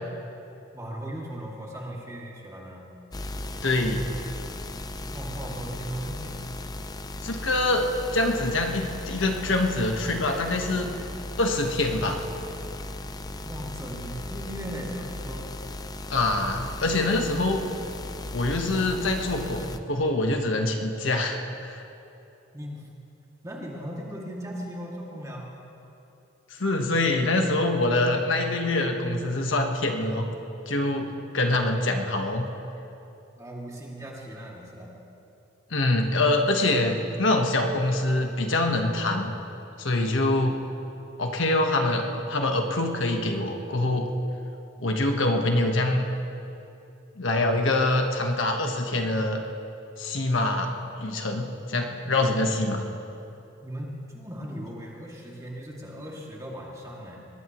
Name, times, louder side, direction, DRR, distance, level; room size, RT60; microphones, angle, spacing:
voice 1, 0.7-2.9 5.1-6.4 13.4-15.6 22.5-23.1 23.4-25.5 33.4-35.0 53.6-57.3, equal, 15° right, -3 dB, 2.4 m, -38 dB
sound 1, 3.1-19.8, left 1 dB, 20° left, 0.5 m, -37 dB
voice 2, 3.6-4.1 7.2-10.9 11.4-12.2 16.1-17.6 18.3-21.8 26.5-30.3 30.7-32.5 35.7-39.3 39.8-40.6 41.2-44.1 44.8-46.0 47.2-49.4 50.0-52.8, left 2 dB, 70° left, 3 dB, 1.3 m, -25 dB
21.5 x 18.5 x 3.1 m, 2.8 s
head